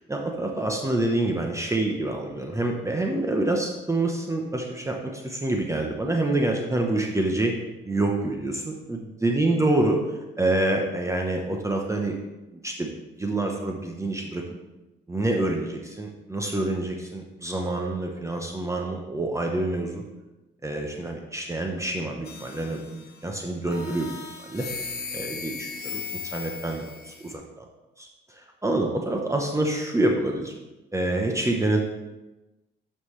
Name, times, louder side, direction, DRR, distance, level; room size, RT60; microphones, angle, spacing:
voice 1, 0.0-7.5 7.9-10.0 10.4-12.2 12.6-12.9 13.2-14.4 15.1-20.0 20.6-24.1 24.5-24.6 25.1-27.6 28.0-30.5 30.9-31.8, right 2 dB, 15° right, 1 dB, 0.8 m, -27 dB
sound 1, 22.2-23.2 23.7-27.3, left 5 dB, 55° left, 1.0 m, -37 dB
9.5 x 5.5 x 3.2 m, 1.1 s
cardioid pair, 90°, 20 cm